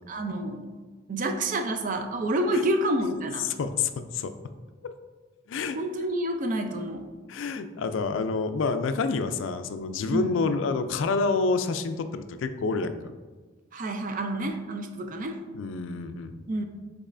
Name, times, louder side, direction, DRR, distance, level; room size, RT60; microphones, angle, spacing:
voice 1, 0.1-0.6 1.1-3.5 5.7-7.1 10.1-10.4 13.7-15.4 16.5-16.6, right 1 dB, 40° right, 6 dB, 0.4 m, -28 dB
voice 2, 3.4-4.3 5.5-5.8 7.3-12.9 15.5-16.4, left 4 dB, 70° left, 9 dB, 0.3 m, -28 dB
5.3 x 4.1 x 2.5 m, 1.3 s
head